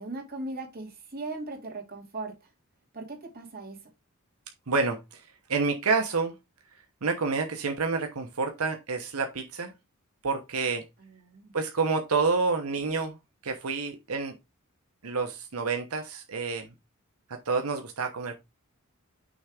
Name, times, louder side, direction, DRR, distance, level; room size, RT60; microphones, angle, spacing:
voice 1, 0.0-2.5 2.9-3.8 11.2-11.5, right 2 dB, 45° right, 2.5 m, -38 dB
voice 2, 4.7-5.2 5.5-6.4 7.0-9.7 10.2-10.9 11.5-13.2 13.4-14.3 15.0-16.7 17.3-18.4, right 4 dB, 90° right, 0.9 m, -28 dB
6.3 x 3.4 x 4.8 m
head